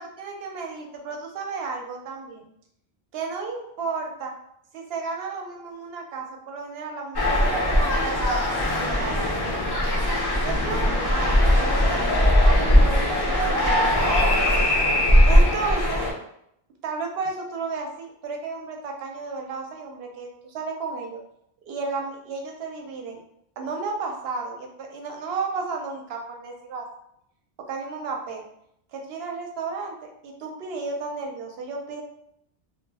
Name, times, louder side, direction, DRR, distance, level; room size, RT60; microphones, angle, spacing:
voice 1, 0.0-2.5 3.1-4.3 4.7-9.2 10.4-12.2 12.4-14.4 15.2-16.0 16.8-21.2 21.7-23.2 23.6-26.8 27.7-28.4 28.9-32.0, right 4 dB, 75° right, 2 dB, 0.8 m, -33 dB
sound 1, 7.1-16.1, equal, 25° left, 0.6 m, -20 dB
2.1 x 2.0 x 3.3 m, 0.75 s
omnidirectional pair, 1.1 m